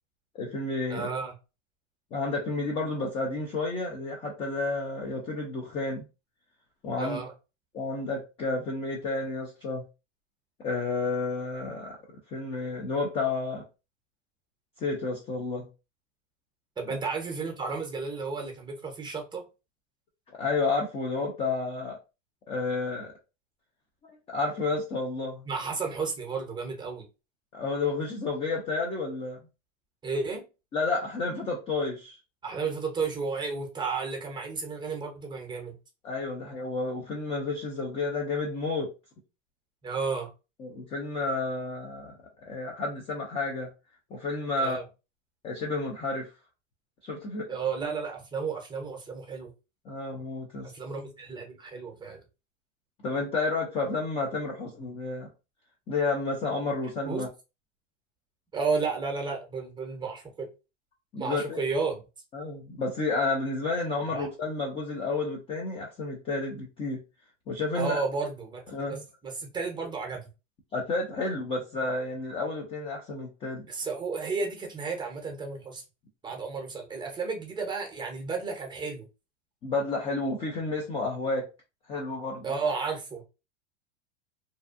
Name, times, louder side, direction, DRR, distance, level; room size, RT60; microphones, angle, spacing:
voice 1, 0.3-1.1 2.1-6.0 6.8-7.2 7.7-9.8 10.6-12.0 12.3-13.6 14.8-15.7 16.9-17.0 20.4-22.0 22.5-23.1 24.3-25.4 27.5-29.4 30.7-32.2 36.0-38.9 40.6-42.2 42.5-43.7 44.1-44.8 45.4-46.3 47.0-47.5 49.9-50.7 53.0-55.3 55.9-57.3 61.1-61.6 62.3-67.0 67.5-68.0 68.7-69.0 70.7-73.6 79.6-81.5 81.9-82.4, left 3 dB, 15° left, 0.3 m, -31 dB
voice 2, 0.9-1.3 7.0-7.3 16.8-19.4 25.5-27.0 30.0-30.4 32.4-35.8 39.8-40.3 44.6-44.8 47.5-49.5 50.6-52.2 57.0-57.3 58.5-60.5 61.2-62.0 64.0-64.3 67.7-68.6 68.9-70.2 73.7-75.8 76.2-79.1 82.4-83.2, right 4 dB, 10° right, 0.7 m, -32 dB
2.6 x 2.3 x 2.4 m
supercardioid pair, 130°, 37 cm